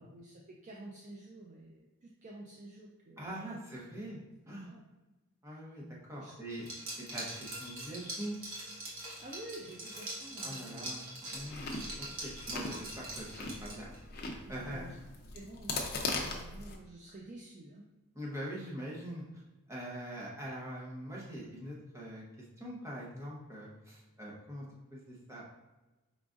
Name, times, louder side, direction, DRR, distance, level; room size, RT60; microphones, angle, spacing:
voice 1, 0.0-3.6 4.7-4.8 6.2-6.3 9.2-10.9 14.5-15.0 15.3-17.8, right 2 dB, 35° right, -1 dB, 0.4 m, -50 dB
voice 2, 3.2-4.2 4.5-4.7 5.4-6.7 7.0-8.4 10.4-11.0 11.3-11.7 12.0-14.8 16.1-16.2 18.1-19.2 19.7-25.4, equal, 15° right, -5 dB, 0.9 m, -43 dB
Liquid, 6.6-14.0, right 1 dB, 65° right, 1.2 m, -43 dB
Chewing mastication, 11.3-16.8, left 3 dB, 45° left, 0.6 m, -40 dB
4.8 x 3.7 x 2.5 m, 1.1 s
head